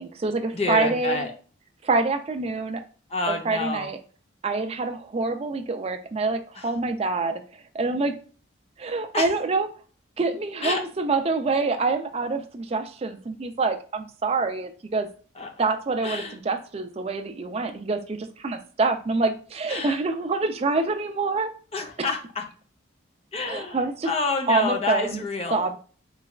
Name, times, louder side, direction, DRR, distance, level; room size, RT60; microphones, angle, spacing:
voice 1, 0.0-1.3 1.8-2.8 3.3-4.0 4.4-7.4 7.7-8.1 8.8-9.7 10.2-15.1 15.6-21.5 22.0-22.1 23.5-24.1 24.5-25.2 25.5-25.8, right 3 dB, 30° right, 7 dB, 0.4 m, -26 dB
voice 2, 0.5-1.3 3.1-3.9 6.6-6.7 9.1-9.3 10.6-10.8 15.4-15.5 16.0-16.4 19.7-20.0 21.7-22.4 23.3-25.7, left 3 dB, 30° left, 3 dB, 0.6 m, -28 dB
3.9 x 3.2 x 2.3 m, 0.40 s
head